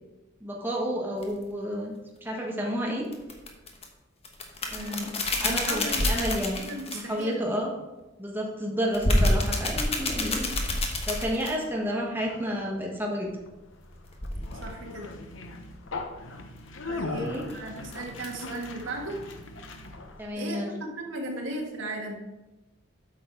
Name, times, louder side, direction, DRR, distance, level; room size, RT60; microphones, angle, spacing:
voice 1, 0.4-1.9 2.2-3.1 4.7-5.1 5.4-6.6 6.9-7.7 8.2-10.5 11.1-13.3 17.1-17.4 20.2-20.7, equal, 10° right, -2 dB, 1.3 m, -30 dB
sound 1, 1.2-1.4 3.1-3.8 4.2-7.2 8.9-11.6 14.1-14.7 17.2-18.8 19.2-19.3 19.6-19.9, left 1 dB, 30° left, 1.2 m, -28 dB
voice 2, 4.7-5.0 5.4-7.5 14.6-15.1 16.8-19.2 20.3-22.2, right 1 dB, 75° right, 0 dB, 1.8 m, -36 dB
Conversation, 11.2-20.3, left 2 dB, 75° left, 0.9 m, -40 dB
8.4 x 6.4 x 4.6 m, 1.1 s
head